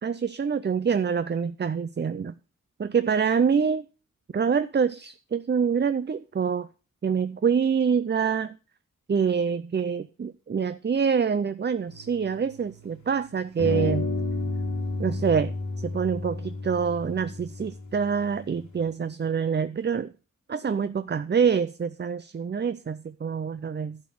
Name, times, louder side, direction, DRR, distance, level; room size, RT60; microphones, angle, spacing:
voice 1, 0.0-2.3 2.8-3.9 4.3-6.7 7.0-8.5 9.1-14.1 15.0-15.5 15.8-20.1 20.5-24.0, right 6 dB, 35° right, 0.5 m, -26 dB
sound 1, 11.9-13.1 13.6-18.8, left 2 dB, 85° left, 2.1 m, -32 dB
11.5 x 5.2 x 6.7 m
wide cardioid pair, 75°, 29 cm